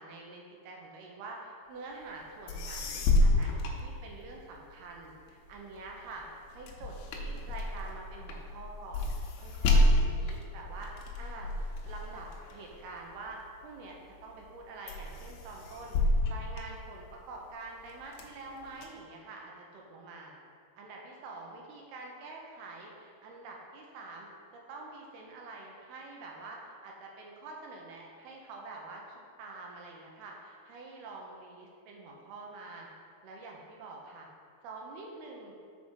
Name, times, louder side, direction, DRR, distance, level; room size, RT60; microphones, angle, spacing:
voice 1, 0.0-9.1 9.4-10.9 11.2-11.5 11.8-14.0 14.2-20.3 20.8-24.3 24.7-32.9 33.2-34.3 34.6-35.5, right 3 dB, 80° right, -1 dB, 2.8 m, -46 dB
sound 1, 2.2-2.3 2.5-4.6 5.0-13.7 14.2-14.6 14.9-17.4 17.8-18.8, left 1 dB, 85° left, 2.9 m, -30 dB
7.5 x 5.0 x 5.5 m, 2.2 s
omnidirectional pair, 4.7 m